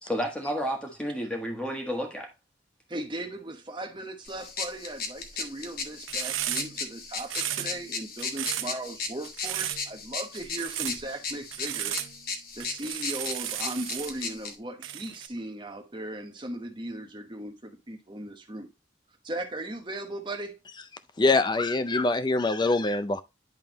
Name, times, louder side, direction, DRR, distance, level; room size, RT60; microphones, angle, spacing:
voice 1, 0.0-2.3, equal, 5° left, 1.5 m, -31 dB
voice 2, 2.9-12.0 12.5-18.7 19.2-20.6, right 1 dB, 25° right, 1.0 m, -37 dB
sound 1, 4.3-14.5, left 4 dB, 50° left, 0.9 m, -36 dB
sound 2, 6.1-6.8 7.2-7.9 8.2-8.7 9.2-9.9 10.3-11.0 11.5-12.2 12.6-14.2 14.8-15.3, right 12 dB, 90° right, 0.6 m, -34 dB
voice 3, 21.2-23.2, left 3 dB, 20° left, 0.4 m, -24 dB
10.5 x 3.7 x 2.9 m
head